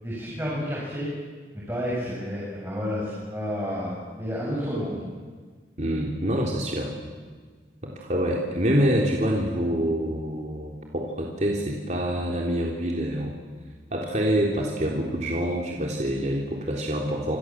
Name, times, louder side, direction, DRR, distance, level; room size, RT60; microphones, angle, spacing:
voice 1, 0.0-1.1 1.5-5.0, equal, 15° right, -5 dB, 7.6 m, -30 dB
voice 2, 5.8-6.9 7.8-13.3 13.9-17.4, equal, 40° right, -1 dB, 3.6 m, -26 dB
28.0 x 27.0 x 7.6 m, 1.5 s
head